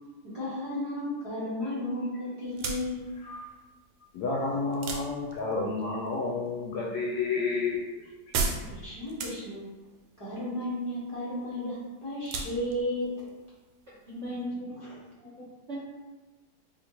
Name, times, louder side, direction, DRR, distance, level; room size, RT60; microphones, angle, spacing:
voice 1, 0.2-3.1 8.7-9.6 10.2-13.2 14.8-14.9, left 1 dB, 25° left, -10 dB, 0.8 m, -33 dB
sound 1, 2.4-14.5, right 4 dB, 85° right, 1.5 m, -39 dB
voice 2, 4.1-7.8, left 3 dB, 80° left, -3 dB, 0.9 m, -30 dB
voice 3, 14.1-14.8 15.2-15.8, equal, 60° right, -10 dB, 0.7 m, -37 dB
4.3 x 2.4 x 2.9 m, 1.2 s
omnidirectional pair, 2.3 m